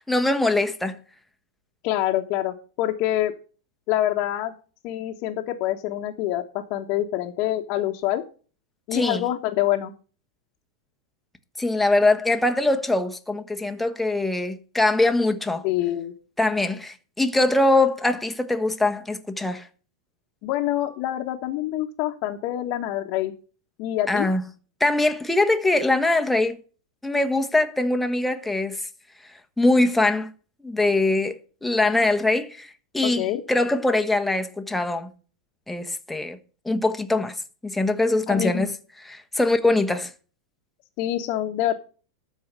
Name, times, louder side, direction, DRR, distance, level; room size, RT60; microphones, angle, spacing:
voice 1, 0.1-1.0 8.9-9.2 11.6-15.6 16.4-19.7 24.1-24.4 24.8-26.6 27.0-28.8 29.6-30.3 30.6-35.1 35.7-36.4 36.6-37.4 37.6-38.7 39.0-40.1, left 2 dB, 5° left, 1.3 m, -22 dB
voice 2, 1.8-3.3 3.9-4.5 4.8-8.2 8.9-9.9 15.6-16.1 20.4-23.3 23.8-24.3 33.0-33.4 38.3-38.7 41.0-41.7, left 13 dB, 50° left, 1.3 m, -26 dB
12.5 x 4.8 x 8.1 m
hypercardioid pair, 120°, 2 cm